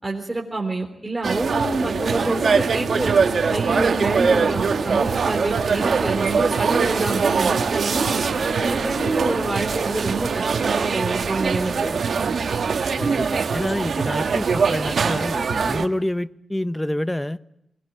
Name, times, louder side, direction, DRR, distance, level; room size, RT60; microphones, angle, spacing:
voice 1, 0.0-3.1 3.5-8.2 8.6-12.0, right 2 dB, 15° right, 0 dB, 3.7 m, -27 dB
sound 1, 1.2-15.9, right 5 dB, 70° right, 1.5 m, -22 dB
sound 2, 1.7-10.7, left 5 dB, 80° left, 2.2 m, -37 dB
voice 2, 13.0-17.4, left 1 dB, 10° left, 14 dB, 0.9 m, -27 dB
22.0 x 20.5 x 9.4 m, 0.79 s
cardioid pair, 60°, 0 cm